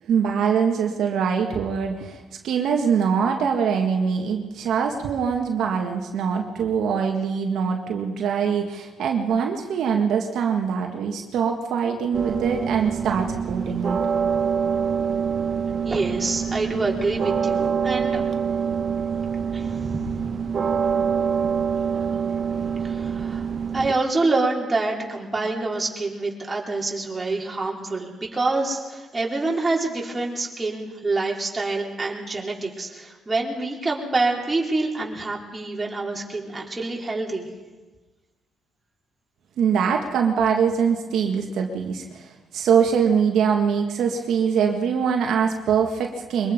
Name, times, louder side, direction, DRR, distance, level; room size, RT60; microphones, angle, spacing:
voice 1, 0.1-14.0 39.6-46.5, right 6 dB, 75° right, 2 dB, 1.9 m, -23 dB
sound 1, 12.1-23.9, right 6 dB, 45° right, 1.6 m, -25 dB
voice 2, 15.8-18.2 19.5-20.2 22.8-23.4 23.7-37.5, right 3 dB, 25° right, -1 dB, 4.7 m, -26 dB
23.5 x 22.0 x 5.4 m, 1.3 s
cardioid pair, 75°, 0 cm